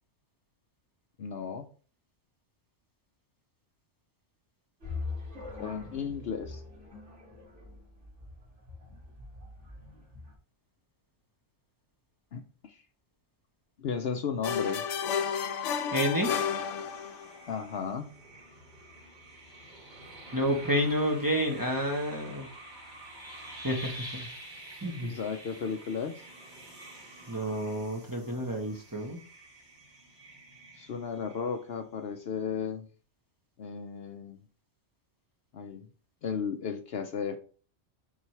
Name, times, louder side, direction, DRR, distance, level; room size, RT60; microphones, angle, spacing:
voice 1, 1.2-1.7 5.6-6.6 12.3-12.8 13.8-14.9 17.5-18.1 25.1-26.2 30.8-32.9 33.6-34.4 35.5-35.9 36.2-37.4, left 6 dB, 60° left, 7 dB, 0.8 m, -34 dB
sound 1, 4.8-10.3, left 3 dB, 70° right, 3.0 m, -42 dB
sound 2, 14.4-17.4, left 7 dB, 85° left, 1.0 m, -31 dB
sound 3, 15.6-31.9, right 1 dB, 40° right, 2.2 m, -48 dB
voice 2, 15.9-16.3 20.3-22.5 23.6-24.3 24.8-25.1 27.3-29.2, equal, 15° right, 1 dB, 1.2 m, -29 dB
7.2 x 4.7 x 3.3 m, 0.39 s
omnidirectional pair, 1.2 m